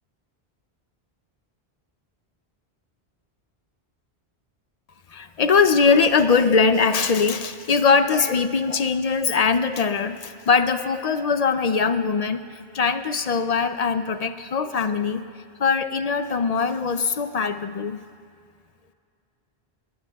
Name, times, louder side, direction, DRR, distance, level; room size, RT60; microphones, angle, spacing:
voice 1, 5.1-12.4 12.7-15.2 15.6-18.0, left 5 dB, 50° left, 11 dB, 0.5 m, -21 dB
21.0 x 19.0 x 2.3 m, 2.3 s
omnidirectional pair, 1.0 m